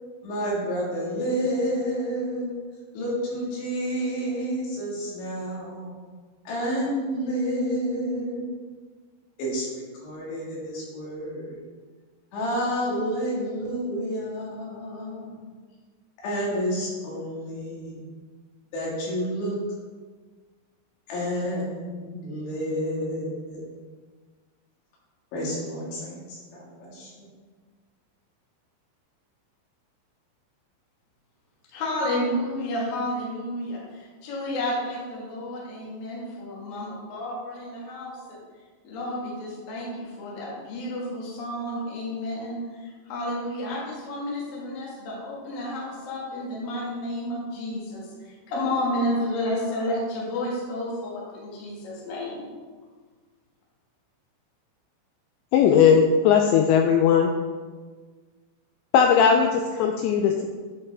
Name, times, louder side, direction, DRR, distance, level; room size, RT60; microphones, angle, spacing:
voice 1, 0.2-2.5 2.9-6.0 6.5-8.5 9.4-11.6 12.3-15.4 16.2-18.1 18.7-19.6 21.1-23.6 25.3-27.3, equal, 70° left, -5 dB, 4.4 m, -30 dB
voice 2, 31.7-38.4 38.8-52.5, left 1 dB, 55° left, -4 dB, 3.1 m, -31 dB
voice 3, 55.5-57.3 58.9-60.5, left 7 dB, 85° left, 3 dB, 2.5 m, -18 dB
10.5 x 5.4 x 3.6 m, 1.5 s
omnidirectional pair, 5.6 m